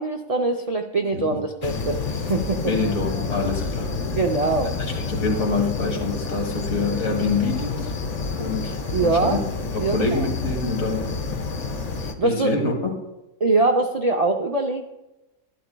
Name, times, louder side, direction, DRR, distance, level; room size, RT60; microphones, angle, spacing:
voice 1, 0.0-2.0 2.3-2.6 4.2-5.0 8.9-9.4 9.8-10.3 12.2-12.5 13.4-14.8, right 3 dB, 50° right, 3 dB, 0.4 m, -23 dB
sound 1, 1.6-12.1, left 4 dB, 40° left, 0.7 m, -29 dB
voice 2, 2.7-3.9 5.0-7.9 8.4-9.4 9.7-11.4 12.2-13.0, left 3 dB, 80° left, 1 dB, 2.0 m, -26 dB
11.5 x 11.0 x 2.2 m, 0.97 s
omnidirectional pair, 1.4 m